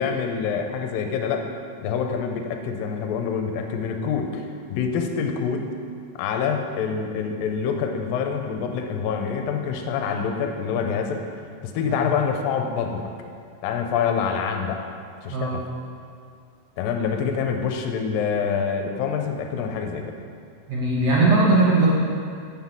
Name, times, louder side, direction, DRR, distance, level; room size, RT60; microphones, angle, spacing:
voice 1, 0.0-1.5 1.8-4.5 4.7-5.7 6.2-11.2 11.6-13.0 13.6-14.8 15.2-15.6 16.8-20.1, left 6 dB, 90° left, 4 dB, 2.4 m, -26 dB
voice 2, 20.7-21.9, right 3 dB, 55° right, -6 dB, 1.9 m, -19 dB
7.6 x 5.9 x 7.3 m, 2.3 s
omnidirectional pair, 4.1 m